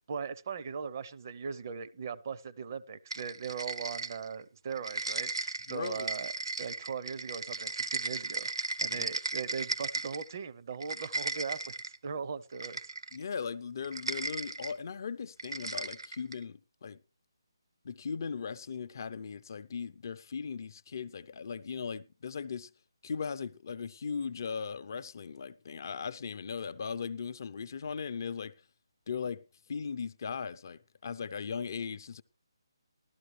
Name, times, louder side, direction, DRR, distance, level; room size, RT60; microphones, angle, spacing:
voice 1, 0.1-6.3 6.6-12.8, right 6 dB, 40° right, 0.7 m, -39 dB
sound 1, 3.1-4.4 4.7-10.3 10.7-12.0 12.6-13.2 13.8-14.7 15.4-16.4, right 3 dB, 75° right, 1.1 m, -36 dB
voice 2, 5.7-6.1 8.9-9.0 13.1-17.0 17.8-22.7 23.0-28.5 29.1-29.4 29.7-32.2, left 6 dB, 45° left, 0.6 m, -38 dB
15.0 x 12.5 x 3.2 m
figure-of-eight pair, 150°, 3 cm